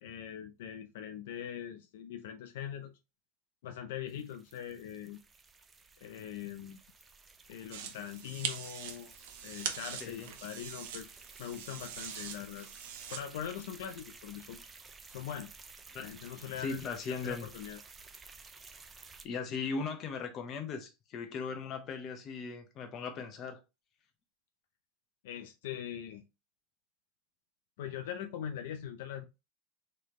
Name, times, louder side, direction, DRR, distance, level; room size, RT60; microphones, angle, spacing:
voice 1, 0.0-3.0 3.6-5.2 6.0-6.8 7.5-9.1 9.4-11.1 11.4-12.8 13.1-14.6 15.1-15.5 16.0-17.8 25.2-26.3 27.8-29.2, left 9 dB, 80° left, 0.5 m, -42 dB
sound 1, 4.1-19.3, right 4 dB, 20° right, 0.5 m, -54 dB
sound 2, 7.7-13.2, right 8 dB, 75° right, 0.8 m, -42 dB
voice 2, 16.6-17.5 19.2-23.6, left 5 dB, 40° left, 1.0 m, -38 dB
3.9 x 3.3 x 3.1 m
supercardioid pair, 120°, 0 cm